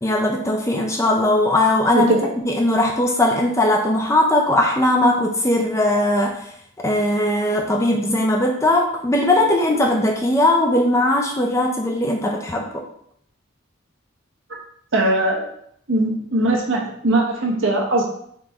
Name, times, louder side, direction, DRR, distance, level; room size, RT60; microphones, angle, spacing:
voice 1, 0.0-2.1 2.5-6.4 6.8-12.8, left 1 dB, 15° left, 1 dB, 0.4 m, -19 dB
voice 2, 1.9-2.3 14.9-15.5 15.9-18.0, right 1 dB, 60° right, -1 dB, 1.0 m, -20 dB
4.1 x 3.2 x 3.5 m, 0.68 s
head